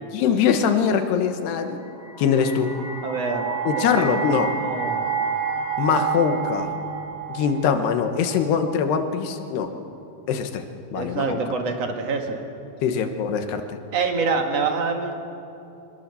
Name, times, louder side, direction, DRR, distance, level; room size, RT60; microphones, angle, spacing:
voice 1, 0.1-1.8 2.2-2.7 3.7-4.5 5.8-6.7 7.3-9.7 10.3-10.6 10.9-11.4 12.8-13.6, left 7 dB, 85° left, 7 dB, 3.4 m, -22 dB
sound 1, 1.8-8.9, right 6 dB, 25° right, 1.1 m, -29 dB
voice 2, 3.0-4.2 4.6-5.1 10.9-12.4 13.9-15.1, right 4 dB, 50° right, 4 dB, 2.4 m, -26 dB
25.0 x 20.5 x 7.0 m, 2.8 s
omnidirectional pair, 4.6 m